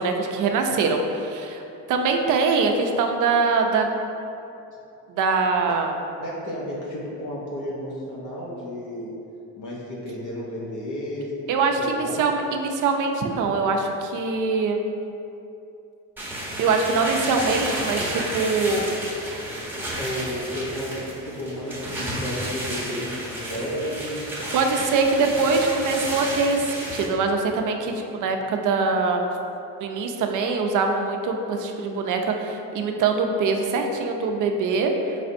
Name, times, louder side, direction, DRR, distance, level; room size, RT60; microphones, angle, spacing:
voice 1, 0.0-1.6 1.9-3.9 5.1-5.9 11.5-14.8 16.6-18.9 24.5-29.2 29.8-34.9, right 4 dB, 60° right, 3 dB, 0.5 m, -23 dB
voice 2, 6.2-9.1 9.6-11.4 11.8-12.2 20.0-24.2, equal, 60° left, -5 dB, 0.9 m, -32 dB
sound 1, 16.2-27.1, right 1 dB, 5° right, 0.9 m, -32 dB
4.1 x 3.3 x 2.6 m, 2.7 s
cardioid pair, 85°, 35 cm